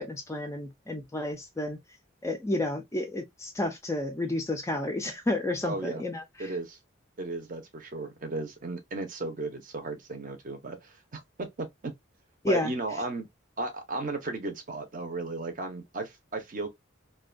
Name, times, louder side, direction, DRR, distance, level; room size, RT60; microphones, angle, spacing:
voice 1, 0.0-1.8 2.2-6.5 12.4-12.7, left 2 dB, 15° left, 0.3 m, -31 dB
voice 2, 5.6-6.0 6.4-6.8 7.2-11.9 12.5-13.3 13.6-16.7, right 2 dB, 40° right, 0.6 m, -35 dB
2.5 x 2.2 x 2.4 m
head